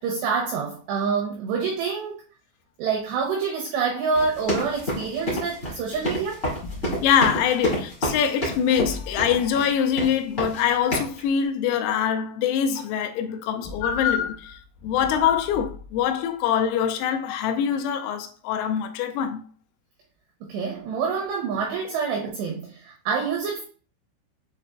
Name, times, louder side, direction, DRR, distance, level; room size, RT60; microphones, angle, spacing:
voice 1, 0.0-2.2 2.8-6.4 20.4-23.6, right 5 dB, 90° right, 2.4 m, -27 dB
sound 1, 4.1-9.7 10.0-10.6 10.9-11.2, equal, 65° left, 0.6 m, -28 dB
voice 2, 6.6-19.5, left 8 dB, 90° left, 3.4 m, -24 dB
7.8 x 2.7 x 2.5 m
omnidirectional pair, 5.9 m